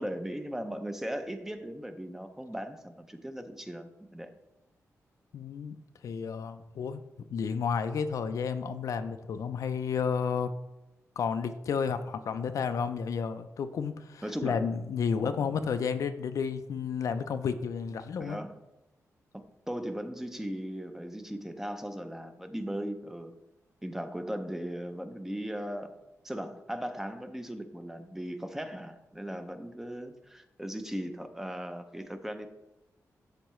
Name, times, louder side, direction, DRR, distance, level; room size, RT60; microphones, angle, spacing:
voice 1, 0.0-4.4 14.2-14.7 15.2-15.4 18.2-18.6 19.3-23.4 23.8-26.0 26.2-32.5, equal, 5° right, 8 dB, 0.5 m, -38 dB
voice 2, 5.3-5.8 6.0-7.0 7.3-10.5 11.2-18.4, left 6 dB, 70° left, 10 dB, 0.5 m, -31 dB
12.0 x 4.5 x 3.1 m, 0.94 s
wide cardioid pair, 150°, 6 cm